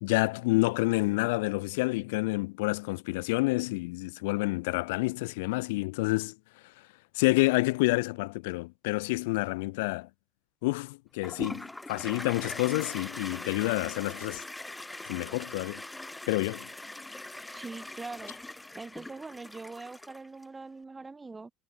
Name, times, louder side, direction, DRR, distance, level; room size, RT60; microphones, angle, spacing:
voice 1, 0.0-6.3 7.1-10.1 10.6-14.4 15.1-15.8 16.3-16.7, left 23 dB, 90° left, 1.2 m, -28 dB
Toilet flush, 11.2-20.4, left 2 dB, 5° left, 0.9 m, -41 dB
voice 2, 17.5-18.3 18.7-21.5, right 3 dB, 15° right, 1.9 m, -42 dB
supercardioid pair, 130°, 0 cm